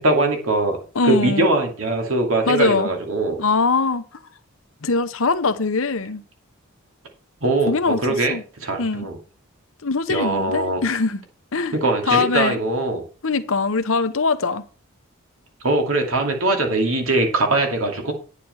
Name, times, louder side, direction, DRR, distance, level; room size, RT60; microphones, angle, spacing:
voice 1, 0.0-0.8 1.0-3.4 7.4-9.2 10.1-10.8 11.7-13.0 15.6-18.1, right 2 dB, 70° right, 2.5 m, -21 dB
voice 2, 0.9-1.5 2.4-2.9 3.4-4.0 4.8-6.2 7.7-8.0 8.3-8.4 8.8-9.1 9.8-11.2 11.5-11.7 12.1-12.6 13.2-14.6, left 4 dB, 70° left, 1.0 m, -21 dB
10.0 x 6.6 x 5.7 m
head